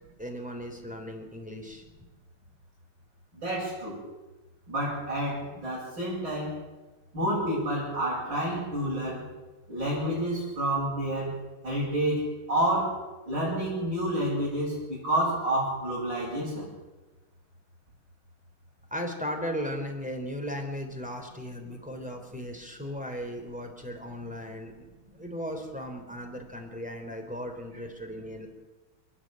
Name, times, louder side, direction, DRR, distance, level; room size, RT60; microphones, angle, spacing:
voice 1, 0.2-1.8 18.9-24.9 25.2-28.5, equal, 5° right, 2 dB, 3.4 m, -36 dB
voice 2, 3.3-4.0 4.7-6.6 7.1-9.2 9.7-11.4 11.6-16.7, right 1 dB, 55° right, -8 dB, 8.8 m, -29 dB
30.0 x 10.0 x 9.0 m, 1.2 s
omnidirectional pair, 2.4 m